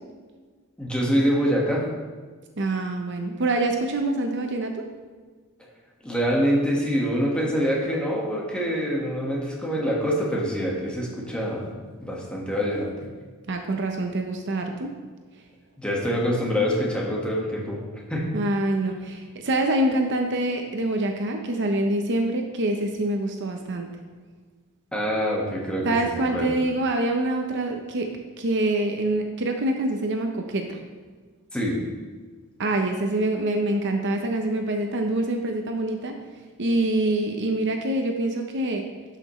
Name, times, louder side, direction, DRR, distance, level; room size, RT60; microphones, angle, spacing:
voice 1, 0.8-1.9 6.0-11.7 12.0-12.9 15.8-17.8 18.1-18.3 24.9-26.5 31.5-31.8, equal, 5° left, -3 dB, 1.5 m, -25 dB
voice 2, 2.6-4.9 13.5-14.9 18.3-23.9 25.8-30.8 32.6-36.2 36.6-38.9, right 1 dB, 55° right, 4 dB, 0.7 m, -25 dB
12.0 x 5.8 x 3.1 m, 1.5 s
head